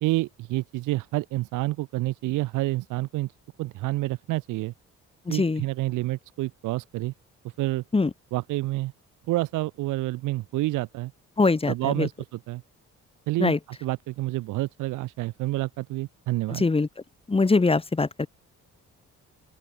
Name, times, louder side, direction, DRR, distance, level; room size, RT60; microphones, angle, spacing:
voice 1, 0.0-3.3 3.6-4.7 5.3-7.1 7.4-7.8 8.3-8.9 9.3-11.1 11.7-12.6 13.3-16.6, right 18 dB, 85° right, 0.7 m, -28 dB
voice 2, 5.3-5.6 7.9-8.1 11.4-12.1 13.4-13.6 16.5-16.9 17.3-18.3, left 3 dB, 20° left, 1.4 m, -22 dB
open air
cardioid pair, 90°, 30 cm